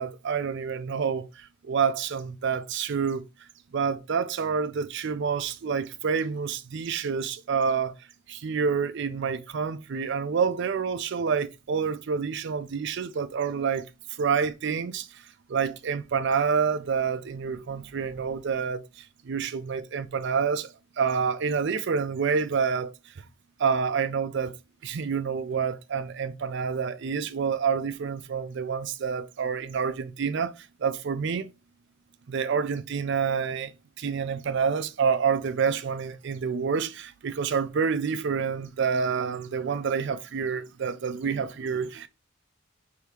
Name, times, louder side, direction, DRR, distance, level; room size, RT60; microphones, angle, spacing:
voice 1, 0.0-3.2 3.7-8.0 8.3-13.9 14.2-15.1 15.5-23.2 23.6-24.5 24.8-30.5 30.8-31.5 32.3-33.7 34.0-42.1, right 6 dB, 55° right, 0.4 m, -28 dB
4.7 x 2.8 x 3.3 m
head